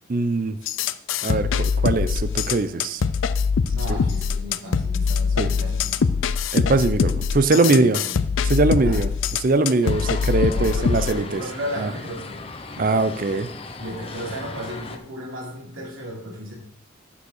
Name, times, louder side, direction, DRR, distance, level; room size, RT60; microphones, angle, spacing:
voice 1, 0.1-0.6 1.2-3.0 3.9-4.0 5.4-5.5 6.5-8.0 8.4-9.1 9.4-11.4 11.8-11.9 12.8-13.5, right 3 dB, 45° right, 12 dB, 0.5 m, -21 dB
sound 1, 0.7-11.1, left 5 dB, 75° left, 0.4 m, -23 dB
voice 2, 3.7-6.2 7.5-8.4 8.8-9.0 10.4-12.5 12.7-13.1 13.8-16.5, equal, 85° right, -3 dB, 3.3 m, -35 dB
sound 2, 9.8-15.0, left 3 dB, 30° left, 0.7 m, -37 dB
7.0 x 7.0 x 6.4 m, 0.70 s
head